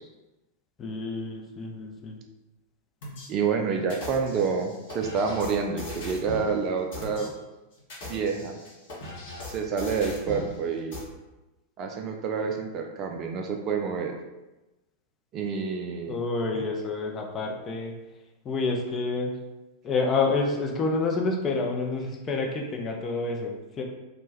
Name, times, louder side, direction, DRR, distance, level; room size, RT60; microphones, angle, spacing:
voice 1, 0.8-2.2 16.1-17.9 18.4-19.3 19.8-23.8, left 3 dB, 25° left, 0 dB, 0.5 m, -28 dB
sound 1, 3.0-3.3 3.9-6.5 6.9-7.3 7.8-10.5 10.9-11.0, left 2 dB, 55° left, 0.9 m, -39 dB
voice 2, 3.3-7.3 8.0-8.6 9.5-11.0 11.8-14.2 15.3-16.2 16.5-16.6, right 5 dB, 35° right, 3 dB, 0.3 m, -28 dB
2.5 x 2.1 x 3.2 m, 1.0 s
figure-of-eight pair, 90°, 0 cm